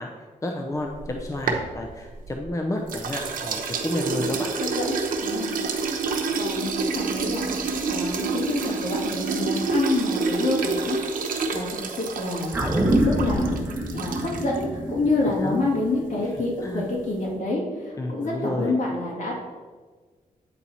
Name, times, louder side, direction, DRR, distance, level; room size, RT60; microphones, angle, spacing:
voice 1, 0.0-4.5 15.4-15.6 16.6-16.9 18.0-18.7, left 1 dB, 25° left, 2 dB, 0.6 m, -30 dB
sound 1, 0.9-2.5 2.9-14.6, right 4 dB, 85° right, 0.8 m, -28 dB
voice 2, 4.1-4.9 5.2-5.6 6.4-7.5 7.8-11.0 11.5-12.5 13.0-13.6 13.9-14.6 14.9-19.3, left 2 dB, 65° left, -3 dB, 2.1 m, -27 dB
sound 2, 12.5-17.1 17.5-17.6, right 1 dB, 15° right, 1.1 m, -27 dB
8.8 x 4.3 x 4.1 m, 1.4 s
wide cardioid pair, 110°, 14 cm